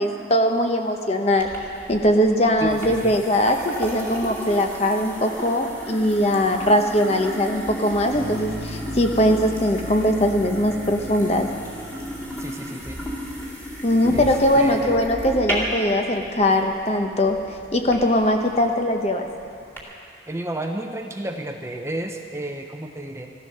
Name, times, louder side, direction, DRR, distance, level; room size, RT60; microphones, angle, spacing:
voice 1, 0.0-1.5 1.9-11.5 13.8-17.4 17.7-19.3, left 1 dB, 35° left, 5 dB, 0.9 m, -21 dB
sound 1, 1.4-19.8, equal, 10° left, 2.4 m, -35 dB
voice 2, 2.6-3.2 12.4-13.1 14.1-14.3 14.5-15.0 20.3-23.3, right 1 dB, 15° right, 4 dB, 0.7 m, -32 dB
sound 2, 8.1-14.2, equal, 65° left, 1.5 m, -38 dB
15.5 x 12.5 x 6.6 m, 2.6 s
head